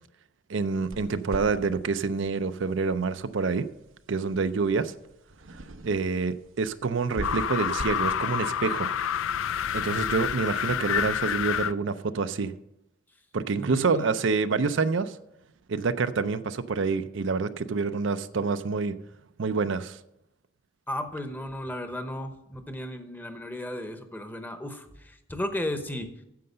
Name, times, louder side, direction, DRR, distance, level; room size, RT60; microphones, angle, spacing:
voice 1, 0.5-3.7 4.1-4.9 5.5-9.0 9.7-12.5 13.3-15.2 15.7-18.9 19.4-20.0, right 4 dB, 70° right, 0.5 m, -27 dB
sound 1, 0.6-10.0, right 1 dB, 90° right, 0.9 m, -44 dB
sound 2, 7.2-11.7, left 9 dB, 80° left, 0.4 m, -28 dB
voice 2, 13.6-14.2 20.9-26.1, left 1 dB, 10° left, 0.8 m, -34 dB
9.5 x 7.7 x 6.7 m
head